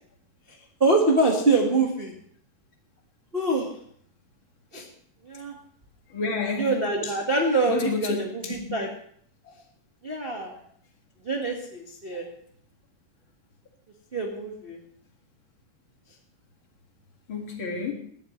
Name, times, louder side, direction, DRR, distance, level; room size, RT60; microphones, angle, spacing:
voice 1, 0.8-2.1 3.3-3.7 4.7-4.9 5.2-5.5 6.6-8.9 10.0-10.5 11.2-12.3 14.1-14.8, right 2 dB, 30° right, -1 dB, 1.0 m, -24 dB
voice 2, 6.1-6.7 7.6-8.2 8.7-8.8 9.4-9.5 10.5-10.6 17.3-17.9, left 5 dB, 40° left, 2 dB, 2.5 m, -30 dB
19.0 x 12.5 x 3.2 m, 0.62 s
omnidirectional pair, 3.8 m